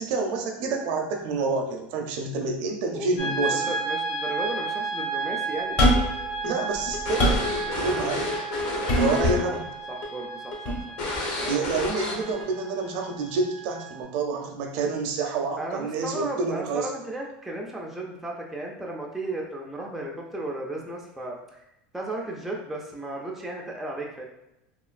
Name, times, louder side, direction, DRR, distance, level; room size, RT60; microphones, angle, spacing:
voice 1, 0.0-3.7 6.4-8.4 8.9-9.6 11.4-16.9, right 3 dB, 60° right, 2 dB, 0.5 m, -28 dB
sound 1, 3.2-14.0, right 4 dB, 85° left, 1.2 m, -33 dB
voice 2, 3.5-5.8 8.9-9.1 9.9-10.7 11.4-11.5 15.6-21.6 21.9-24.2, right 2 dB, 5° right, -2 dB, 0.3 m, -35 dB
sound 2, 5.8-6.2 6.7-7.5 8.9-9.4 10.7-10.8, equal, 35° left, 0.7 m, -22 dB
sound 3, 6.0-9.6 9.8-10.1 10.5-10.6 11.0-12.4, left 2 dB, 60° left, 1.0 m, -30 dB
3.0 x 2.3 x 2.4 m, 0.89 s
supercardioid pair, 150°, 5 cm